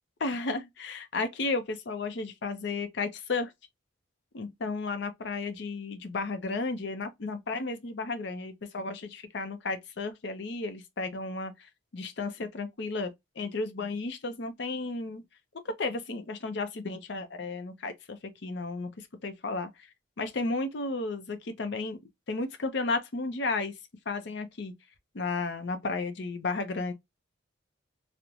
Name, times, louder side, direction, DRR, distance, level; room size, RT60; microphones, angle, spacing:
voice 1, 0.2-3.5 4.3-15.2 15.8-19.7 20.2-22.0 22.3-23.7 24.1-24.7 25.1-26.9, left 3 dB, 55° left, 0.5 m, -33 dB
3.0 x 2.1 x 2.4 m
head